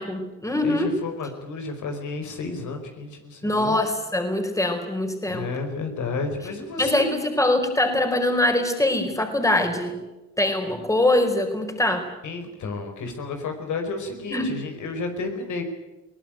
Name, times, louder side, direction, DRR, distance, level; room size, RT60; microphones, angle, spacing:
voice 1, 0.0-1.0 3.4-5.5 6.8-10.0 10.4-12.1 14.3-14.6, left 1 dB, 10° left, 5 dB, 4.6 m, -23 dB
voice 2, 0.6-3.8 5.3-7.1 12.2-15.6, left 3 dB, 75° left, 5 dB, 5.1 m, -31 dB
22.0 x 19.0 x 9.2 m, 1.1 s
cardioid pair, 90°, 30 cm